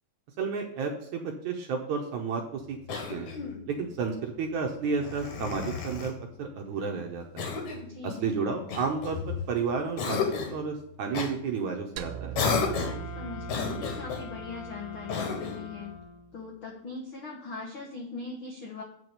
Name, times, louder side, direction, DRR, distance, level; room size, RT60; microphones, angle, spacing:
voice 1, 0.4-2.8 3.1-3.3 3.7-7.5 8.0-10.2 10.5-12.4, right 5 dB, 70° right, 2 dB, 1.9 m, -32 dB
Cough, 2.9-3.6 5.0-6.2 7.4-7.9 8.7-9.5 10.0-10.6 11.1-11.3 12.3-13.1 13.5-14.3 15.1-15.7, left 5 dB, 60° left, 2.4 m, -32 dB
voice 2, 7.8-8.3 13.1-15.9 16.3-18.8, left 4 dB, 80° left, 0 dB, 1.1 m, -40 dB
sound 1, 12.0-16.3, right 12 dB, 90° right, 2.6 m, -42 dB
sound 2, 12.5-16.4, left 6 dB, 35° left, 2.0 m, -44 dB
8.6 x 4.7 x 6.8 m, 0.77 s
omnidirectional pair, 4.3 m